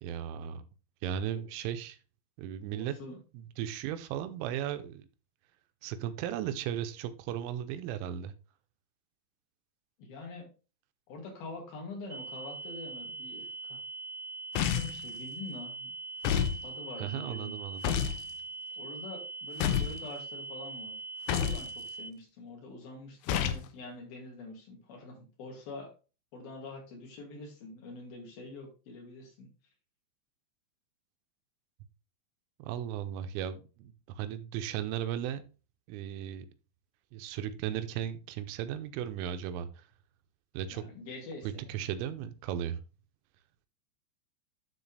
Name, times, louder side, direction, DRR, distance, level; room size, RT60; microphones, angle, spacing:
voice 1, 0.0-0.6 1.0-2.0 2.4-5.0 5.8-8.3 17.0-17.9 32.6-35.4 35.9-36.5 37.1-39.8 40.5-40.9 41.7-42.8, right 10 dB, 90° right, 10 dB, 3.3 m, -36 dB
voice 2, 2.7-3.2 10.0-10.5 11.1-13.8 14.6-15.9 16.6-17.5 18.8-21.0 21.3-25.9 26.3-29.5 40.7-41.9, left 2 dB, 55° left, 1 dB, 3.6 m, -45 dB
sound 1, 12.1-22.1, right 3 dB, 65° right, 1.4 m, -42 dB
sound 2, 14.6-15.0 16.2-16.6 17.8-18.2 19.6-20.0 21.3-21.7 23.3-23.7, left 9 dB, 80° left, 2.8 m, -29 dB
12.0 x 4.1 x 3.3 m, 0.33 s
omnidirectional pair, 5.6 m